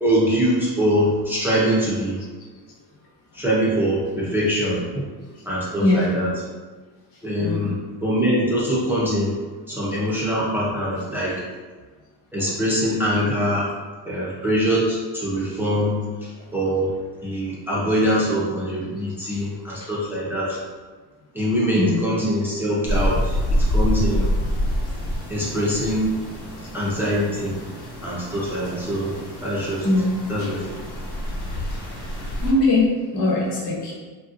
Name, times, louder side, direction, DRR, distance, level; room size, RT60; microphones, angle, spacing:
voice 1, 0.0-2.2 3.3-5.1 5.5-6.3 7.2-7.8 8.0-9.3 9.7-11.4 12.3-13.7 14.0-16.9 17.2-20.6 21.3-24.3 25.3-26.1 26.7-27.5 28.0-29.1 29.4-29.9 30.3-30.6, equal, 5° right, -8 dB, 0.4 m, -23 dB
voice 2, 7.4-7.8 19.3-19.4 21.8-22.0 29.8-30.5 32.4-32.9 33.1-33.9, left 2 dB, 60° left, -3 dB, 0.9 m, -21 dB
sound 1, 22.9-32.5, left 1 dB, 30° left, 0.9 m, -27 dB
3.2 x 2.7 x 2.4 m, 1.4 s
cardioid pair, 165°, 45 cm